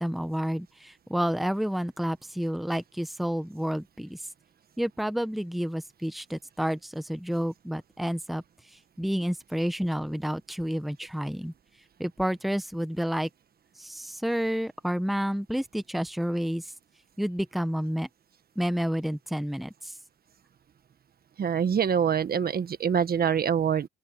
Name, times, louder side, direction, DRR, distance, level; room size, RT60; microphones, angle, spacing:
voice 1, 0.0-4.2 4.8-8.4 9.0-11.5 12.0-13.3 13.8-16.7 17.2-18.1 18.6-19.9, equal, ahead, 1.1 m, -30 dB
voice 2, 21.4-23.9, right 7 dB, 50° right, 1.4 m, -25 dB
open air
cardioid pair, 90°, 20 cm